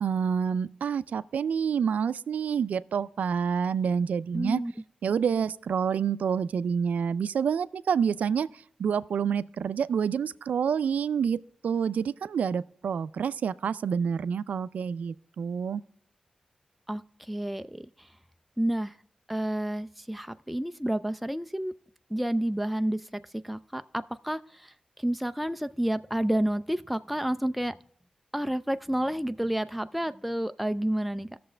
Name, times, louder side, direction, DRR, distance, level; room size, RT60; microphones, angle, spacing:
voice 1, 0.0-4.6 5.0-8.5 8.8-11.4 11.6-15.8, right 7 dB, 85° right, 0.4 m, -28 dB
voice 2, 4.3-4.7 16.9-18.1 18.6-18.9 19.3-21.7 22.1-24.7 25.0-27.8 28.3-31.4, right 1 dB, ahead, 0.3 m, -30 dB
17.5 x 6.7 x 3.3 m
wide cardioid pair, 95°, 3 cm